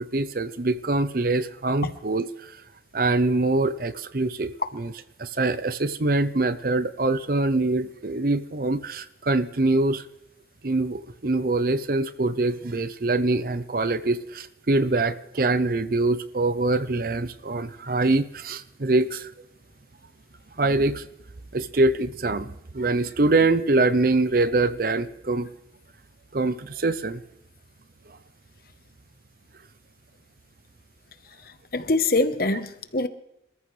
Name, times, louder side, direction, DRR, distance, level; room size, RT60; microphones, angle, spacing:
voice 1, 0.0-2.5 2.9-4.9 5.2-10.0 10.6-19.3 20.6-21.1 21.5-25.5 26.3-27.2 28.1-28.2, right 2 dB, 55° right, 13 dB, 0.7 m, -24 dB
voice 2, 31.7-33.1, left 2 dB, 55° left, 11 dB, 1.1 m, -24 dB
27.5 x 14.0 x 3.3 m, 0.82 s
head